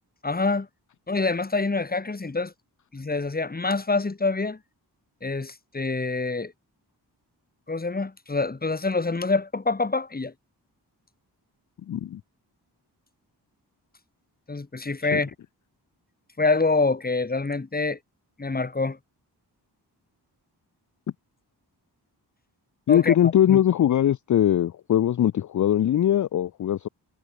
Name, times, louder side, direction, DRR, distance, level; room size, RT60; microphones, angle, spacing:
voice 1, 0.2-0.7 1.1-2.5 2.9-4.6 5.2-6.5 7.7-10.3 14.5-15.3 16.4-18.0 18.4-19.0 22.9-23.1 23.5-23.6, left 3 dB, 20° left, 1.1 m, -26 dB
voice 2, 11.9-12.2 15.1-15.2 22.9-26.9, left 11 dB, 45° left, 0.4 m, -21 dB
cardioid pair, 45°, 43 cm